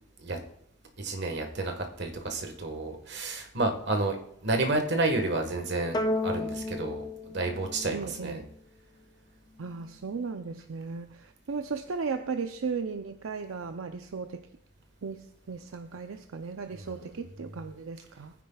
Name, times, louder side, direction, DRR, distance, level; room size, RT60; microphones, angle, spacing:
voice 1, 1.0-4.2 4.4-8.4 16.8-17.0, right 2 dB, 55° right, 4 dB, 1.5 m, -30 dB
sound 1, 5.9-8.5, left 2 dB, 20° left, 0.5 m, -32 dB
voice 2, 7.9-8.5 9.6-14.4 15.0-18.3, right 5 dB, 80° right, 7 dB, 0.5 m, -36 dB
19.5 x 9.7 x 2.3 m, 0.71 s
head